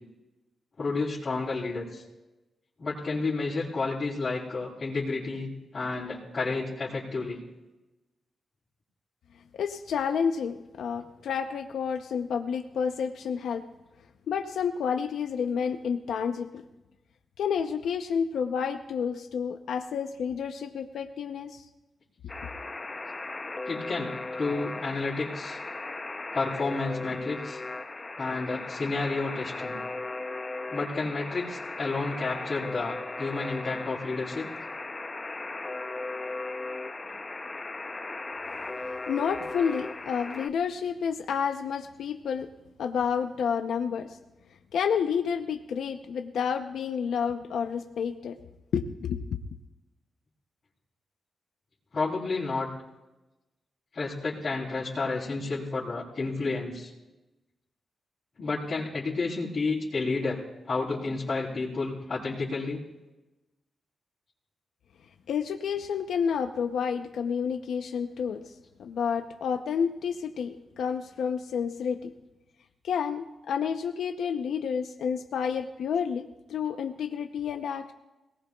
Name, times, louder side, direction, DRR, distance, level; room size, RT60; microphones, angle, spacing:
voice 1, 0.8-2.0 2.8-7.4 23.6-25.6 26.3-27.6 28.2-29.8 30.7-34.5 37.0-37.1 51.9-52.7 53.9-56.9 58.4-60.4 60.7-62.8, left 3 dB, 50° left, -8 dB, 3.5 m, -31 dB
voice 2, 9.5-13.6 14.3-16.6 17.4-21.6 38.8-42.5 42.8-44.2 44.7-48.4 48.7-49.4 65.3-68.4 68.8-72.1 72.8-77.9, left 7 dB, 85° left, 6 dB, 0.7 m, -30 dB
Alarm, 22.3-40.5, left 2 dB, 30° left, 0.6 m, -37 dB
22.0 x 18.5 x 2.4 m, 1.0 s
cardioid pair, 80°, 0 cm